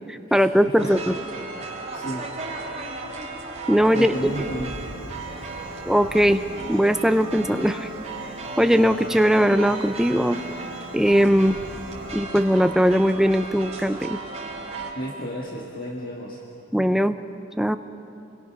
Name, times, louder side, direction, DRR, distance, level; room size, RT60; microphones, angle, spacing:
voice 1, 0.1-1.2 3.7-4.1 5.9-6.4 6.7-7.9 8.6-10.4 10.9-11.6 12.1-14.2 16.7-17.1 17.6-17.8, equal, ahead, 9 dB, 0.5 m, -19 dB
voice 2, 0.8-1.1 1.6-2.3 3.9-4.7 15.0-16.4, equal, 45° left, -1 dB, 1.8 m, -33 dB
sound 1, 0.8-14.9, right 3 dB, 35° right, 3.5 m, -35 dB
Piano, 4.1-12.1, right 2 dB, 70° right, 2.8 m, -44 dB
28.0 x 22.0 x 6.0 m, 3.0 s
head